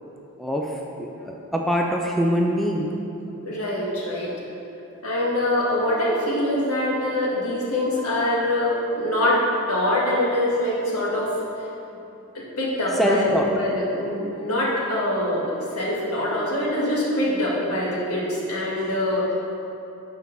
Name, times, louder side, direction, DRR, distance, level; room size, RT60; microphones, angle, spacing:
voice 1, 0.4-2.9 12.9-13.5, equal, ahead, -1 dB, 0.4 m, -23 dB
voice 2, 3.4-4.3 5.0-9.4 9.7-11.3 12.3-19.3, left 1 dB, 80° left, -6 dB, 1.9 m, -24 dB
8.3 x 4.6 x 5.5 m, 2.7 s
head